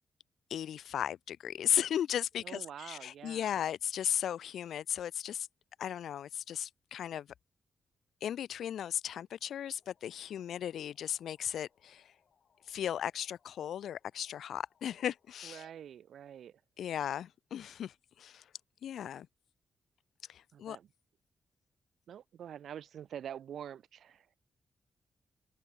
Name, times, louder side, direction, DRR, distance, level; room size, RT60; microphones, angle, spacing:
voice 1, 0.5-5.5 5.8-7.3 8.2-12.0 12.7-15.6 16.8-18.4 18.8-19.3 20.3-20.8, left 10 dB, 85° left, 0.4 m, -36 dB
voice 2, 2.4-3.5 15.4-16.6 20.5-20.9 22.1-24.4, right 9 dB, 70° right, 0.4 m, -46 dB
sound 1, 9.4-16.8, left 7 dB, 50° left, 6.2 m, -75 dB
wide cardioid pair, 175°, 0 cm